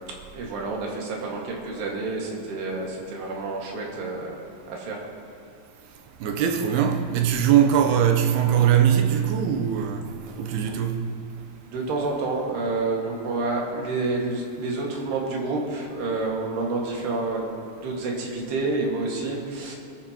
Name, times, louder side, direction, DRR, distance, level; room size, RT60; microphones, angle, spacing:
voice 1, 0.3-4.4 4.7-5.0 11.7-17.5 17.8-19.7, right 3 dB, 65° right, 3.7 m, -28 dB
voice 2, 6.2-11.1, right 9 dB, 80° right, 2.4 m, -21 dB
21.5 x 12.5 x 3.0 m
omnidirectional pair, 5.4 m